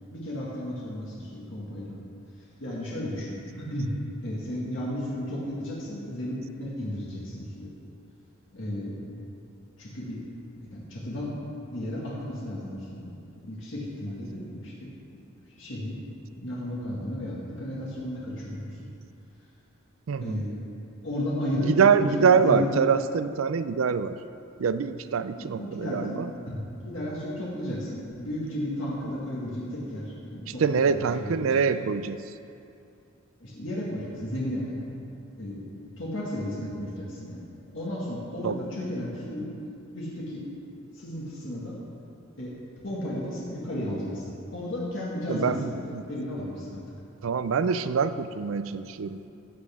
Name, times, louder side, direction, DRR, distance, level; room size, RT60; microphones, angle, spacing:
voice 1, 0.1-2.0 2.4-3.9 4.2-7.7 8.5-9.0 9.8-10.2 10.7-11.3 11.7-14.9 15.6-16.0 16.4-18.9 20.2-20.5 21.0-22.7 25.4-26.2 26.5-30.6 30.9-31.6 33.4-34.9 35.4-35.6 36.0-37.4 37.7-39.5 39.9-40.4 40.7-41.8 42.4-42.5 42.8-44.3 44.5-46.8, left 1 dB, 70° left, -6 dB, 1.9 m, -33 dB
voice 2, 20.1-20.4 21.6-24.2 24.6-26.3 30.5-32.2 38.4-38.7 45.3-46.0 47.2-49.2, right 6 dB, 85° right, 13 dB, 0.4 m, -25 dB
14.5 x 8.3 x 3.6 m, 2.6 s
head